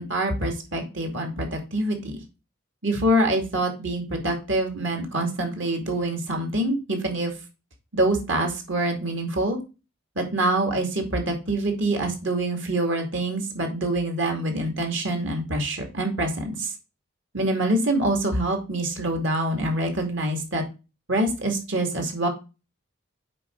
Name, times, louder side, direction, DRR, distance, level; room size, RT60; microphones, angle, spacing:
voice 1, 0.0-2.2 2.8-7.3 7.9-9.6 10.2-16.7 17.3-20.6 21.1-22.3, right 1 dB, 65° right, 4 dB, 2.4 m, -25 dB
7.7 x 4.9 x 3.8 m, 0.29 s
head